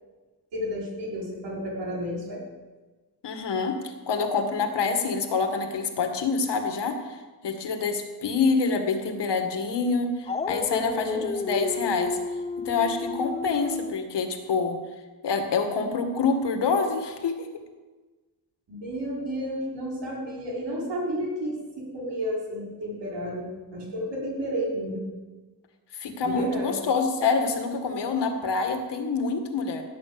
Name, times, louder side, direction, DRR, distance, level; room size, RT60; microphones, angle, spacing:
voice 1, 0.5-2.4 10.7-11.4 18.7-25.0 26.2-26.7, equal, 85° right, -4 dB, 5.4 m, -32 dB
voice 2, 3.2-7.2 7.4-12.2 12.7-14.8 15.2-17.5 25.9-29.8, left 4 dB, 80° left, 5 dB, 2.2 m, -26 dB
Dog, 10.3-14.0, left 4 dB, 15° left, 0.4 m, -32 dB
17.0 x 9.2 x 7.1 m, 1.3 s
wide cardioid pair, 130°, 41 cm